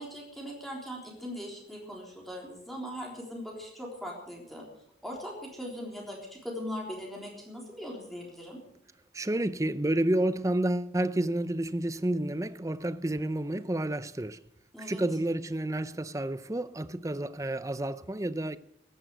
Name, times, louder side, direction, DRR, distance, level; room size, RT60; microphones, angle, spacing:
voice 1, 0.0-4.6 5.0-8.6 14.7-15.0, equal, ahead, 3.6 m, -40 dB
voice 2, 9.1-14.4 14.8-18.6, right 1 dB, 20° right, 0.5 m, -30 dB
15.0 x 11.0 x 7.9 m
head